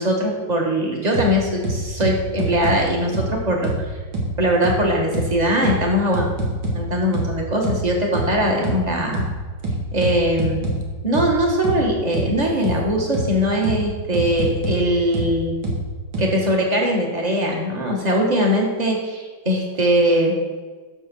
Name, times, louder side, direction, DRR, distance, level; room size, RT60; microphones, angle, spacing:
voice 1, 0.0-3.7 4.4-6.3 6.7-9.3 9.9-10.7 11.0-15.5 16.2-20.3, equal, 20° right, -1 dB, 1.8 m, -21 dB
sound 1, 1.1-1.3 1.6-2.8 3.1-3.3 3.6-3.8 4.1-4.3 4.6-4.8 5.1-5.3 5.6-5.8 6.1-6.8 7.1-7.3 7.6-7.8 8.1-8.3 8.6-8.8 9.1-9.3 9.6-10.8 11.1-11.3 11.6-11.8 12.1-12.3 12.6-12.8 13.1-13.3 13.6-13.8 14.1-14.8 15.1-15.3 15.6-15.8 16.1-16.2, right 2 dB, 80° right, 2.6 m, -24 dB
12.0 x 6.9 x 4.5 m, 1.4 s
omnidirectional pair, 2.1 m